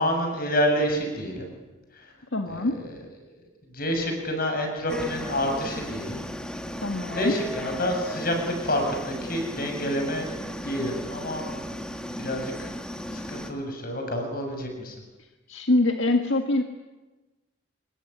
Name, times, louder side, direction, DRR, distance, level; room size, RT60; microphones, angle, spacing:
voice 1, 0.0-1.5 2.5-2.8 3.7-6.2 7.1-12.7 13.1-15.0, equal, 50° left, 3 dB, 7.3 m, -28 dB
voice 2, 2.3-2.8 6.8-7.3 15.5-16.6, left 2 dB, 75° left, 5 dB, 1.8 m, -24 dB
sound 1, 4.9-13.5, equal, 5° left, 2.0 m, -35 dB
27.0 x 22.0 x 10.0 m, 1.2 s
head